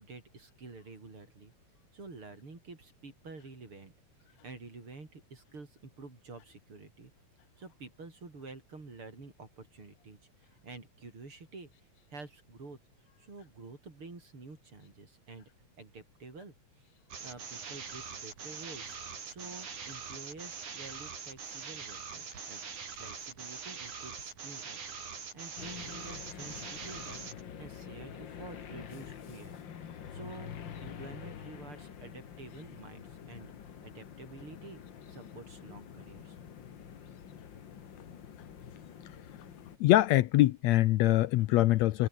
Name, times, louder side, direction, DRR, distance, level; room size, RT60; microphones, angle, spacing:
voice 1, 0.0-1.5 1.9-3.9 4.3-7.1 7.6-11.7 12.1-12.8 13.2-16.9 17.2-19.0 19.2-22.6 22.9-24.8 25.3-27.2 27.6-29.6 30.1-30.5 30.8-33.5 33.8-34.8 35.1-36.4, right 3 dB, 45° right, 5.8 m, -49 dB
sound 1, 17.1-27.4, right 6 dB, 90° right, 5.5 m, -43 dB
ambience shore village, 25.6-39.8, left 8 dB, 45° left, 1.8 m, -47 dB
voice 2, 39.8-42.1, left 16 dB, 75° left, 1.8 m, -23 dB
omnidirectional pair, 3.4 m